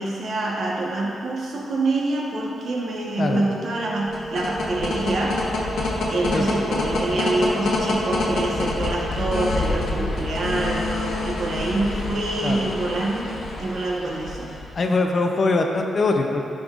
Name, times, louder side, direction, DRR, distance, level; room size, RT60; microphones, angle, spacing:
voice 1, 0.0-5.4 6.1-13.3 13.6-14.5, right 2 dB, 60° right, -3 dB, 1.1 m, -26 dB
sound 1, 3.3-13.6, right 2 dB, 20° right, 0.9 m, -37 dB
sound 2, 4.0-14.8, left 2 dB, 70° left, 1.0 m, -27 dB
voice 2, 14.8-16.4, left 3 dB, 45° left, 3 dB, 0.5 m, -22 dB
10.5 x 5.2 x 2.4 m, 2.7 s
cardioid pair, 105°, 0 cm